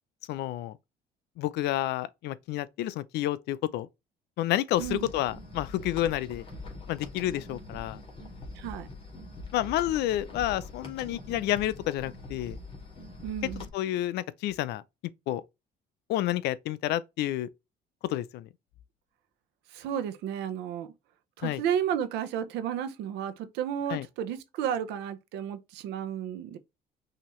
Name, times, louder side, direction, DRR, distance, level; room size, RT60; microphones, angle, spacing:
voice 1, 0.3-0.7 1.4-3.9 4.4-6.4 6.9-8.0 9.5-12.6 13.6-14.8 15.3-15.4 16.1-17.5 18.0-18.5 21.4-21.6 23.9-24.1, left 13 dB, 80° left, 0.5 m, -30 dB
sound 1, 4.7-13.7, left 2 dB, 35° left, 2.1 m, -43 dB
voice 2, 4.8-5.1 8.6-8.9 13.2-13.6 19.7-20.9 21.4-26.6, right 9 dB, 90° right, 0.9 m, -32 dB
5.9 x 2.8 x 3.0 m
cardioid pair, 110°, 17 cm